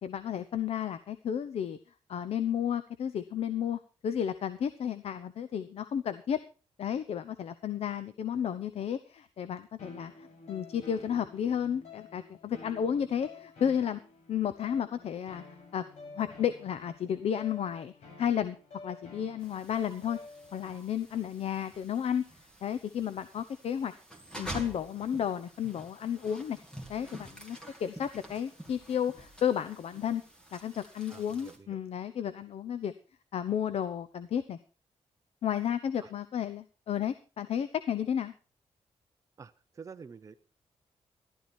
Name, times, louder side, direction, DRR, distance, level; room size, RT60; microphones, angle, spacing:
voice 1, 0.0-1.8 2.1-6.4 6.8-14.0 14.3-15.4 15.7-15.8 16.2-17.9 18.2-20.2 20.5-22.2 22.6-23.9 24.4-26.6 26.9-30.2 30.5-32.9 33.3-34.6 35.4-38.3, left 9 dB, 60° left, 12 dB, 0.8 m, -32 dB
sound 1, 9.8-20.8, left 3 dB, 80° left, 7.1 m, -51 dB
sound 2, 19.4-31.6, right 1 dB, 5° left, 2.5 m, -48 dB
voice 2, 31.1-31.8 36.0-36.1 39.4-40.4, right 5 dB, 30° right, 7 dB, 0.7 m, -48 dB
14.5 x 12.0 x 4.4 m, 0.34 s
wide cardioid pair, 170°, 12 cm